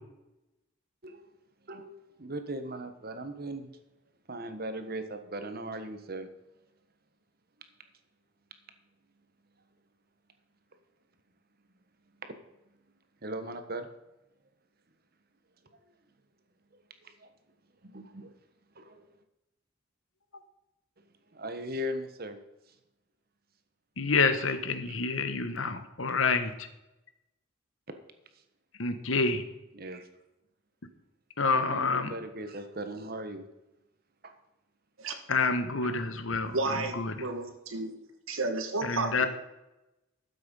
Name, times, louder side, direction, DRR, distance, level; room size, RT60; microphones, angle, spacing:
voice 1, 1.0-1.4 1.7-1.9 2.2-3.7 4.3-6.3 12.2-12.3 13.2-13.9 16.7-17.3 17.8-18.3 18.7-19.0 21.3-22.4 26.1-26.4 29.7-30.1 31.5-33.5 34.2-34.3 35.8-35.9, right 1 dB, 50° right, 8 dB, 1.3 m, -39 dB
voice 2, 24.0-26.7 28.8-29.4 31.4-32.1 35.3-36.5 36.9-37.1 38.8-39.3, left 4 dB, 75° left, 10 dB, 1.2 m, -28 dB
voice 3, 36.4-37.9 38.3-39.3, right 3 dB, 90° right, 6 dB, 1.6 m, -32 dB
12.5 x 7.8 x 5.5 m, 0.96 s
head